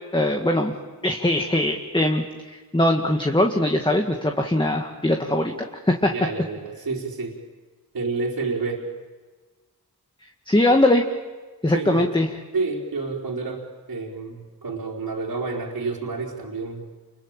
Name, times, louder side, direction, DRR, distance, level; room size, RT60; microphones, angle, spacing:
voice 1, 0.1-0.7 1.0-5.5 5.9-6.1 10.5-11.1 11.6-12.3, left 1 dB, 10° left, 3 dB, 1.8 m, -21 dB
voice 2, 6.0-7.4 7.9-8.8 11.7-12.1 12.5-16.9, right 4 dB, 70° right, -5 dB, 4.2 m, -29 dB
28.5 x 22.5 x 8.9 m, 1.4 s
cardioid pair, 65°, 38 cm